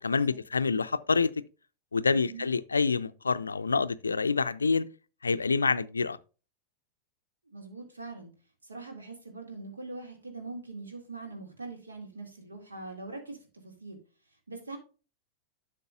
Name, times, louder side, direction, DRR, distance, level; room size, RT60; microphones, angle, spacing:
voice 1, 0.0-1.4 1.9-4.8 5.2-6.2, left 4 dB, 75° left, 0.4 m, -27 dB
voice 2, 2.1-2.5 7.5-8.3 8.6-14.0 14.5-14.8, right 3 dB, 75° right, 2.2 m, -42 dB
11.5 x 6.5 x 2.4 m
figure-of-eight pair, 90°, 0 cm